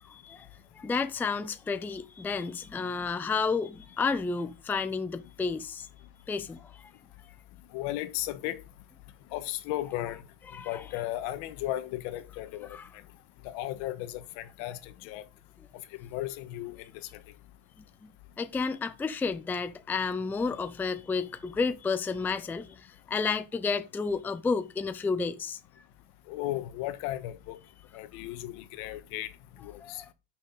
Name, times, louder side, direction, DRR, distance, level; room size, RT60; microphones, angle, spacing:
voice 1, 0.7-5.9 6.3-6.9 10.5-10.8 12.7-12.9 18.0-18.1 18.4-25.6 29.8-30.1, left 4 dB, 5° left, 0.4 m, -31 dB
voice 2, 7.7-8.6 9.3-10.2 10.6-12.8 13.4-15.2 16.0-16.8 26.3-27.6 27.9-29.3 29.6-30.0, left 14 dB, 90° left, 1.5 m, -35 dB
10.5 x 6.4 x 4.0 m
cardioid pair, 155°, 44 cm